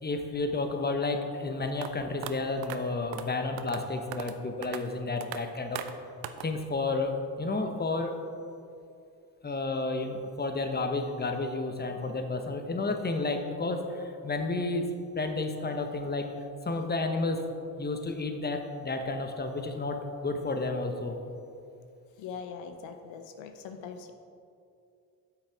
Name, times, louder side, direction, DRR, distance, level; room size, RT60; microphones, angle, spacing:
voice 1, 0.0-5.8 6.4-8.2 9.4-16.3 16.6-17.4 17.8-21.2, left 3 dB, 20° left, 5 dB, 1.1 m, -31 dB
sound 1, 1.8-1.9 2.2-2.3 2.6-2.8 3.1-3.3 3.6-3.8 4.1-4.4 4.6-4.8 5.2-5.4 5.8-5.9 6.2-6.5, right 12 dB, 80° right, 0.6 m, -38 dB
voice 2, 22.2-24.1, left 6 dB, 80° left, 6 dB, 0.7 m, -42 dB
8.2 x 6.6 x 4.8 m, 2.5 s
supercardioid pair, 50°, 45 cm